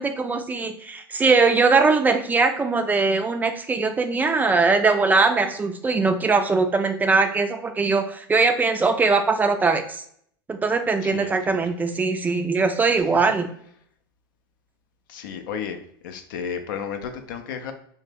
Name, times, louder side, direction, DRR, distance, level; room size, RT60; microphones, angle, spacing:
voice 1, 0.0-10.0 10.5-13.5, right 4 dB, 15° right, 7 dB, 0.3 m, -21 dB
voice 2, 11.0-11.6 15.1-15.8 16.0-17.7, left 7 dB, 65° left, 7 dB, 0.5 m, -33 dB
2.9 x 2.1 x 3.3 m, 0.64 s
hypercardioid pair, 90°, 12 cm